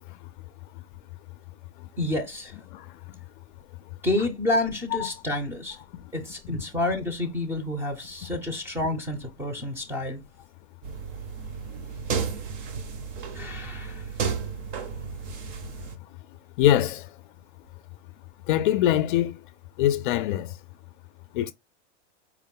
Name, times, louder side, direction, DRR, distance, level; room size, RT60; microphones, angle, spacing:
voice 1, 2.0-2.6 4.0-5.8 6.1-10.2 13.3-14.1, left 2 dB, 5° right, 0.5 m, -29 dB
sound 1, 10.8-16.0, right 6 dB, 50° right, 0.9 m, -33 dB
voice 2, 16.6-17.1 18.5-19.4 19.8-20.5 21.3-21.5, left 12 dB, 50° left, 0.4 m, -22 dB
4.6 x 2.1 x 3.6 m
supercardioid pair, 150°, 34 cm